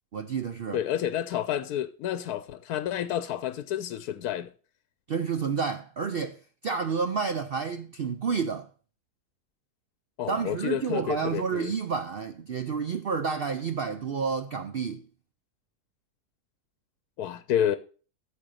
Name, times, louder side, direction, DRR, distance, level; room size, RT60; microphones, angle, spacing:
voice 1, 0.1-0.8 5.1-8.7 10.3-15.0, right 5 dB, 60° right, 0.6 m, -30 dB
voice 2, 0.7-4.5 10.2-11.7 17.2-17.8, left 10 dB, 75° left, 1.1 m, -29 dB
9.0 x 7.0 x 6.5 m
omnidirectional pair, 1.6 m